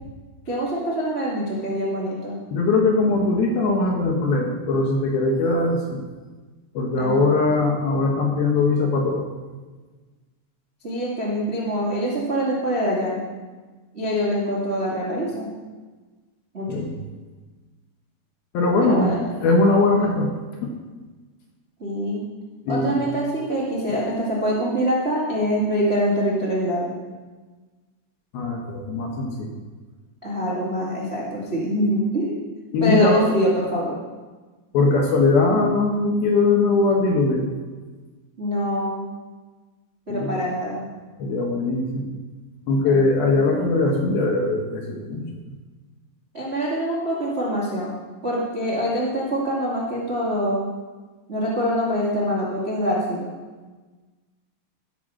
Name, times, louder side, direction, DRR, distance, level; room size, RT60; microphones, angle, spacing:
voice 1, 0.5-2.4 7.0-7.3 10.8-13.3 13.9-15.5 16.5-16.8 18.8-19.2 21.8-22.2 22.7-27.0 30.2-32.4 32.8-34.0 38.4-39.0 40.1-40.8 42.8-43.4 46.3-48.0 48.2-50.7 51.3-53.3, equal, 75° right, -6 dB, 0.5 m, -24 dB
voice 2, 2.5-6.0 6.7-9.3 16.7-16.9 18.5-20.3 20.6-20.7 22.7-23.0 28.3-29.5 32.7-33.2 34.7-37.5 40.1-40.4 41.2-42.1 42.7-45.2, left 3 dB, 65° left, 0 dB, 2.6 m, -21 dB
15.0 x 5.8 x 6.3 m, 1.3 s
omnidirectional pair, 5.7 m